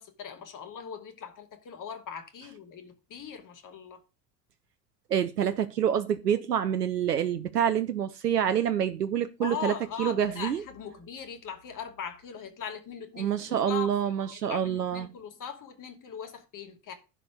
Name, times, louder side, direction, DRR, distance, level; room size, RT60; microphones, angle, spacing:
voice 1, 0.0-4.0 9.4-13.9 14.3-16.9, left 7 dB, 40° left, 2.6 m, -40 dB
voice 2, 5.1-9.7 10.0-10.6 13.2-15.1, right 9 dB, 90° right, 0.7 m, -27 dB
11.0 x 4.3 x 6.5 m
figure-of-eight pair, 65°, 47 cm